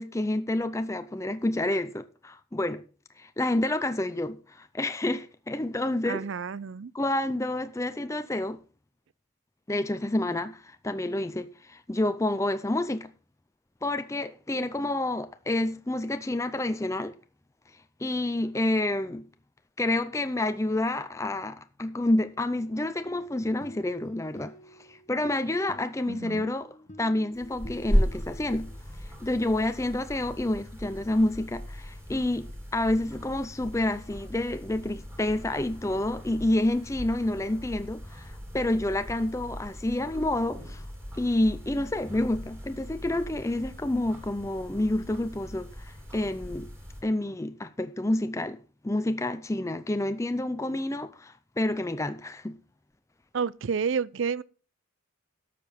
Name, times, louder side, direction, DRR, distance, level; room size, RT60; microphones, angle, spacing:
voice 1, 0.0-2.8 3.2-6.3 6.9-8.6 9.7-13.1 13.8-17.2 18.0-19.3 19.8-24.5 24.9-28.7 29.0-40.9 41.1-46.7 47.0-48.6 48.8-52.6, left 1 dB, 15° left, 0.5 m, -29 dB
voice 2, 6.1-6.9 26.1-26.5 53.3-54.4, right 6 dB, 65° right, 0.5 m, -30 dB
sound 1, 23.2-28.8, left 1 dB, 35° left, 1.1 m, -49 dB
sound 2, 27.3-47.0, equal, 10° right, 2.8 m, -36 dB
12.0 x 6.8 x 5.7 m
head